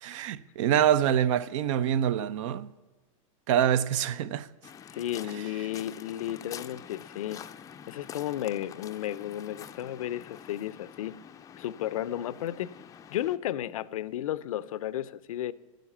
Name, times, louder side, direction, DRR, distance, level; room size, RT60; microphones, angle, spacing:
voice 1, 0.0-2.7 3.5-4.5, right 10 dB, 65° right, 0.5 m, -25 dB
Waves surf, 4.6-13.4, left 8 dB, 20° left, 0.4 m, -46 dB
voice 2, 4.9-7.4 7.9-11.1 11.6-12.7 13.1-15.5, left 12 dB, 85° left, 0.5 m, -33 dB
9.2 x 8.0 x 7.2 m
hypercardioid pair, 125°, 17 cm